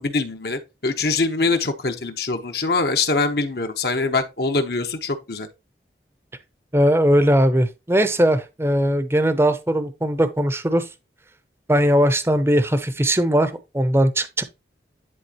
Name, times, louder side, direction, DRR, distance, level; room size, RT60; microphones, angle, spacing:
voice 1, 0.0-5.5, left 3 dB, 60° left, 1.1 m, -23 dB
voice 2, 6.7-10.9 11.7-14.4, equal, 15° right, 0.7 m, -19 dB
10.5 x 3.8 x 3.0 m
head